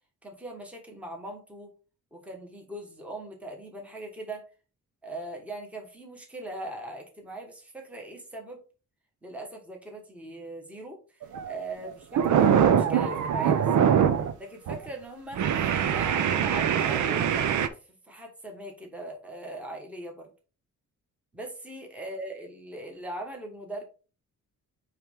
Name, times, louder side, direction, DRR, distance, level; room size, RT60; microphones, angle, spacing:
voice 1, 0.2-1.7 2.1-4.5 5.0-8.6 9.2-15.5 15.9-17.7 18.0-20.3 21.3-23.8, right 1 dB, 5° right, 1 dB, 1.3 m, -40 dB
sound 1, 11.2-11.5 11.9-14.3 14.7-14.9 15.3-17.7, right 8 dB, 70° right, 0.7 m, -23 dB
9.0 x 3.2 x 3.5 m, 0.35 s
cardioid pair, 160°, 31 cm